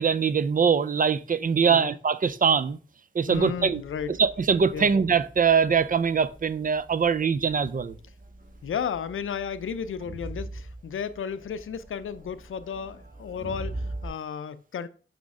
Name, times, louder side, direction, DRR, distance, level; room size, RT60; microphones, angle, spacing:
voice 1, 0.0-2.8 3.1-3.8 4.2-8.0, right 6 dB, 40° right, 0.5 m, -23 dB
voice 2, 1.6-1.9 3.3-4.2 4.7-4.9 8.6-14.9, left 7 dB, 75° left, 0.5 m, -33 dB
Crowd, 3.3-14.1, right 1 dB, 65° right, 3.6 m, -42 dB
6.2 x 5.1 x 3.6 m
cardioid pair, 50°, 21 cm